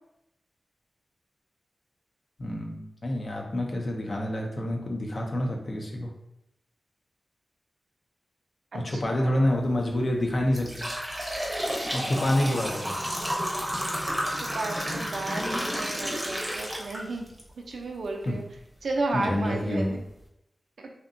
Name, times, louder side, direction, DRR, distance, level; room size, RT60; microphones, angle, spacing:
voice 1, 2.4-6.1 8.7-10.9 11.9-13.0 18.3-18.4 19.1-20.0, left 1 dB, 60° left, 1 dB, 0.6 m, -27 dB
voice 2, 8.7-9.4 14.4-17.3 17.6-18.4 18.8-20.0, right 2 dB, 80° right, 2 dB, 0.4 m, -33 dB
sound 1, 9.6-9.8 10.3-17.4 17.9-18.0 18.8-18.9 19.4-19.5 20.0-20.2, equal, 10° right, 0.7 m, -31 dB
2.7 x 2.1 x 2.5 m, 0.83 s
cardioid pair, 45°, 0 cm